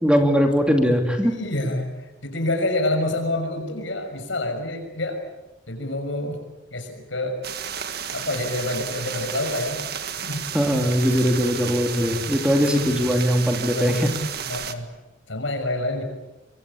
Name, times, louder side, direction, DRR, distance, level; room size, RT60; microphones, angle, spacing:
voice 1, 0.0-1.3 10.5-14.1, equal, 5° right, 4 dB, 2.6 m, -20 dB
voice 2, 1.0-5.2 5.7-6.4 6.7-7.4 8.1-9.8 10.2-10.5 12.5-12.7 13.5-14.1 14.4-14.8 15.3-16.0, left 1 dB, 80° left, 6 dB, 6.2 m, -27 dB
sound 1, 7.4-14.7, right 8 dB, 55° right, 1.8 m, -32 dB
25.0 x 23.5 x 8.6 m, 0.99 s
head